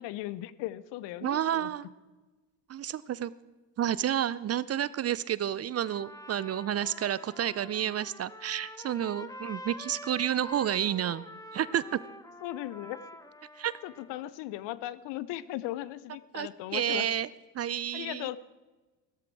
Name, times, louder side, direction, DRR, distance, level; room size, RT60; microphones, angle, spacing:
voice 1, 0.0-1.7 12.4-13.0 13.8-17.1 17.9-18.4, left 15 dB, 60° left, 18 dB, 0.9 m, -37 dB
voice 2, 1.2-1.9 2.7-3.3 3.8-11.2 11.5-12.0 13.6-13.7 16.3-17.3 17.5-18.3, right 10 dB, 30° right, 19 dB, 0.5 m, -30 dB
Trumpet, 5.7-14.2, left 1 dB, 5° left, 1.4 m, -46 dB
16.5 x 13.5 x 4.7 m, 1.2 s
hypercardioid pair, 65°, 49 cm